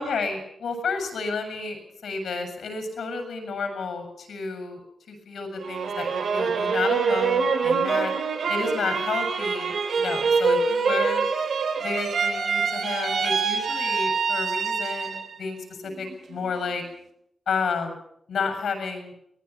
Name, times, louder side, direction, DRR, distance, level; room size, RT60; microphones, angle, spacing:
voice 1, 0.0-4.8 5.1-8.1 8.5-11.3 11.8-16.8 17.5-18.0 18.3-19.1, left 4 dB, 85° left, 7 dB, 7.8 m, -31 dB
sound 1, 5.6-15.4 15.8-16.5, right 5 dB, 70° right, 4.0 m, -25 dB
24.0 x 20.5 x 6.0 m, 0.73 s
wide cardioid pair, 160°, 0 cm